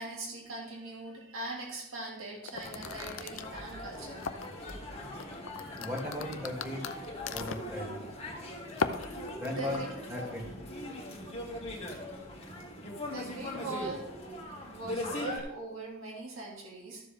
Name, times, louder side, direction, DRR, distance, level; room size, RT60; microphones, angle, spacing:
voice 1, 0.0-4.2 9.5-9.9 13.1-14.1 14.7-17.0, right 2 dB, 80° right, -3 dB, 2.7 m, -41 dB
sound 1, 2.4-4.7 5.2-7.7 8.7-9.8, left 5 dB, 70° left, 0.6 m, -37 dB
sound 2, 2.5-15.4, left 1 dB, 30° left, 1.7 m, -41 dB
voice 2, 5.8-6.8 7.3-8.0 9.3-9.8 10.1-10.5, left 1 dB, 15° right, -3 dB, 2.8 m, -37 dB
13.0 x 7.3 x 3.6 m, 0.79 s
head